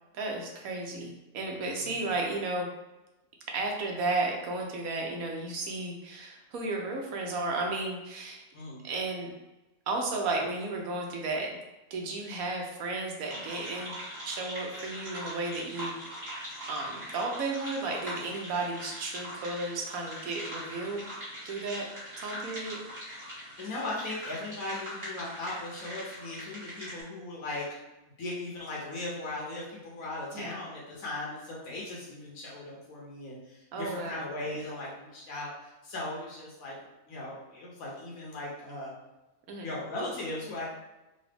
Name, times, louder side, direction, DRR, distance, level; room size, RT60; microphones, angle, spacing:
voice 1, 0.1-2.7 3.5-8.4 8.8-9.3 9.9-11.5 11.9-14.0 14.2-16.0 16.7-21.0 21.4-21.9 22.2-22.8 30.3-30.6 33.7-34.3 39.5-39.7, right 2 dB, 75° right, 0 dB, 1.2 m, -33 dB
voice 2, 8.5-8.9 23.6-27.7 28.2-36.8 37.1-38.9 39.6-40.6, left 2 dB, 70° left, -5 dB, 1.3 m, -38 dB
sound 1, 13.3-27.0, equal, 45° right, 1.9 m, -42 dB
4.0 x 2.3 x 3.3 m, 1.0 s
omnidirectional pair, 1.5 m